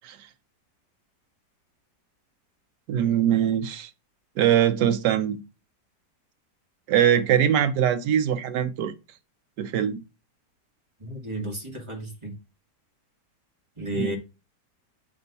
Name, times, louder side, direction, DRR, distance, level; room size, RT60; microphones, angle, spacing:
voice 1, 2.9-3.9 4.4-5.4 6.9-8.9 9.6-10.0 13.9-14.1, right 10 dB, 85° right, 1.3 m, -22 dB
voice 2, 11.0-12.3 13.8-14.2, equal, 20° right, 1.7 m, -33 dB
7.7 x 3.5 x 4.0 m
omnidirectional pair, 1.8 m